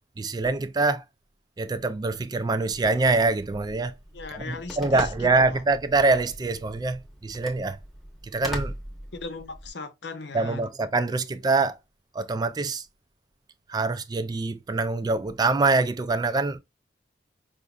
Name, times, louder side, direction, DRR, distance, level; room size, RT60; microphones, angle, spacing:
voice 1, 0.2-1.0 1.6-3.9 4.3-7.8 8.2-8.7 10.3-11.8 12.1-12.8 13.7-16.6, right 3 dB, 25° right, 0.3 m, -25 dB
Telephone, 2.7-9.7, equal, ahead, 0.9 m, -40 dB
voice 2, 4.1-5.6 9.1-10.6, left 3 dB, 75° left, 0.8 m, -38 dB
5.1 x 2.5 x 2.3 m
head